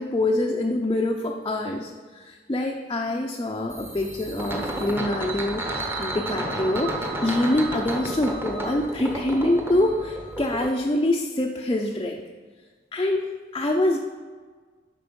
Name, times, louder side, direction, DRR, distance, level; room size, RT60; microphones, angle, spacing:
voice 1, 0.0-5.7 6.0-12.2 12.9-14.0, left 1 dB, 25° left, 0 dB, 0.5 m, -25 dB
sound 1, 3.7-10.7, right 1 dB, 10° right, 0.8 m, -31 dB
7.7 x 5.3 x 5.3 m, 1.5 s
head